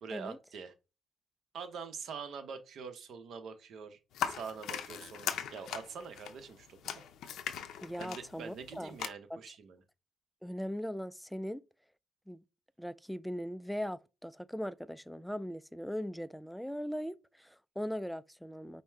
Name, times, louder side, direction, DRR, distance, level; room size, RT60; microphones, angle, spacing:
voice 1, 0.0-0.7 1.5-7.0 8.0-9.8, right 6 dB, 70° right, 0.9 m, -45 dB
sound 1, 4.1-9.1, left 9 dB, 80° left, 0.6 m, -39 dB
voice 2, 7.8-9.0 9.3-9.4 10.4-11.7 12.3-12.4 12.8-18.8, equal, ahead, 0.3 m, -39 dB
5.3 x 2.1 x 4.5 m
cardioid pair, 90°, 0 cm